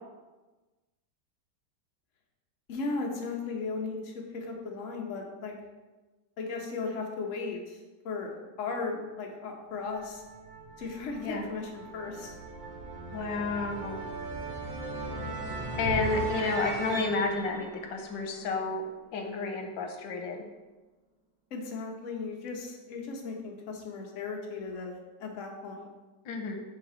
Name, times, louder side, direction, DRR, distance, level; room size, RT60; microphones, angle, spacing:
voice 1, 2.7-5.5 6.4-7.8 8.0-10.2 10.8-12.3 21.5-25.9, left 4 dB, 50° left, 0 dB, 1.1 m, -36 dB
sound 1, 9.7-18.7, right 2 dB, 80° right, 1.6 m, -38 dB
voice 2, 13.1-14.0 15.8-18.8 19.1-20.4 26.3-26.6, left 4 dB, 90° left, 4 dB, 1.5 m, -31 dB
7.5 x 3.2 x 4.3 m, 1.2 s
omnidirectional pair, 2.0 m